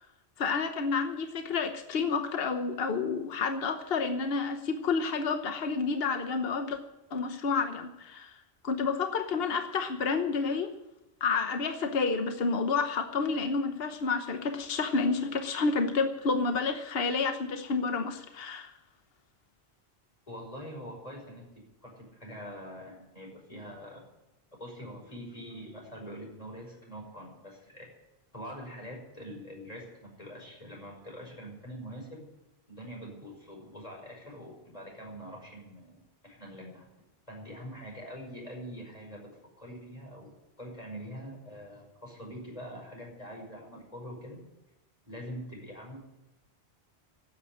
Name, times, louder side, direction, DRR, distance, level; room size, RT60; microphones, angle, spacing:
voice 1, 0.4-6.8 7.1-8.4 8.6-10.7 11.2-18.7, left 4 dB, 65° left, 7 dB, 1.3 m, -30 dB
voice 2, 20.3-24.1 24.6-27.9 28.3-32.3 32.7-36.9 37.3-39.3 39.6-44.4 45.0-46.0, equal, 35° left, -1 dB, 5.8 m, -44 dB
12.0 x 9.3 x 9.9 m, 0.94 s
omnidirectional pair, 1.1 m